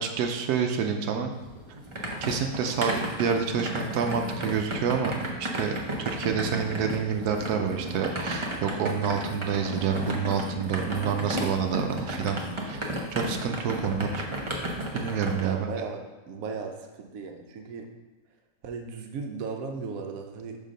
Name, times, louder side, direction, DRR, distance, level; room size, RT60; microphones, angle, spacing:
voice 1, 0.0-1.3 2.2-5.1 5.4-5.7 6.0-12.4 12.6-14.3 14.9-15.7, right 6 dB, 90° right, 4 dB, 1.2 m, -28 dB
sound 1, 1.4-15.4, right 1 dB, 30° right, 0.6 m, -33 dB
voice 2, 15.4-16.0 16.3-17.9 18.6-20.6, right 4 dB, 70° right, 3 dB, 1.1 m, -36 dB
5.7 x 3.6 x 5.0 m, 1.2 s
omnidirectional pair, 1.6 m